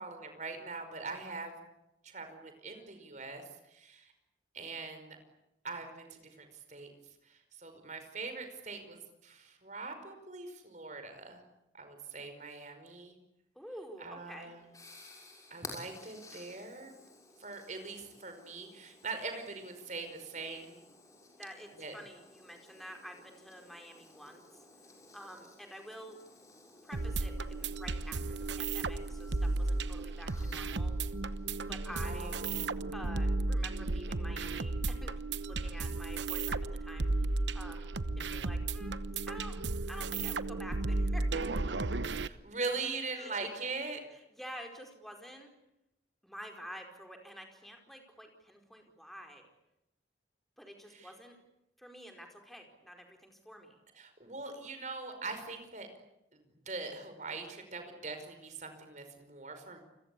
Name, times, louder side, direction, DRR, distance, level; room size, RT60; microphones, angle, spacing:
voice 1, 0.0-1.5 2.0-4.1 4.5-5.2 5.6-6.9 7.2-11.4 11.7-13.1 14.0-14.6 15.5-16.9 17.4-20.8 21.8-21.9 32.0-32.9 42.1-44.0 50.9-51.1 54.0-55.9 56.3-59.8, right 3 dB, 40° right, 7 dB, 5.2 m, -42 dB
voice 2, 13.5-14.5 21.4-24.4 25.1-26.2 26.8-30.9 31.7-32.4 32.9-37.3 37.5-38.9 39.3-39.6 39.9-41.3 43.2-43.3 44.3-45.5 46.2-49.5 50.6-51.4 51.8-53.8, equal, ahead, 3 dB, 4.7 m, -49 dB
sound 1, 14.2-32.2, left 2 dB, 20° left, 6.6 m, -55 dB
sound 2, 26.9-42.3, right 2 dB, 80° right, 1.0 m, -34 dB
29.5 x 22.5 x 8.5 m, 0.87 s
head